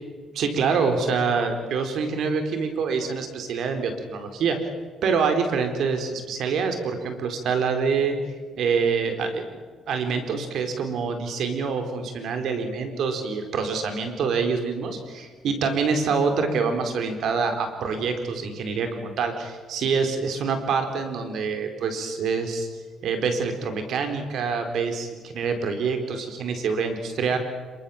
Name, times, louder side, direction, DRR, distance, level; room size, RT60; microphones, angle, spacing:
voice 1, 0.3-4.6 5.0-8.2 8.6-9.4 9.9-22.7 23.0-27.4, right 5 dB, 75° right, 6 dB, 4.5 m, -26 dB
27.0 x 23.5 x 7.4 m, 1.5 s
cardioid pair, 90°, 0 cm